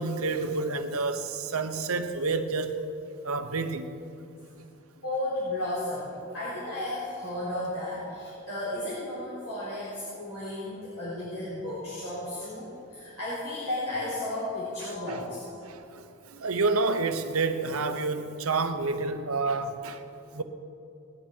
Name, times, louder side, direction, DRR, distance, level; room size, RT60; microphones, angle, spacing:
voice 1, 0.0-2.8 3.2-3.9 14.8-15.3 15.6-20.0 20.3-20.4, right 3 dB, 85° right, 0.9 m, -29 dB
voice 2, 5.0-15.4, left 1 dB, 85° left, 3.9 m, -34 dB
18.5 x 10.5 x 4.6 m
head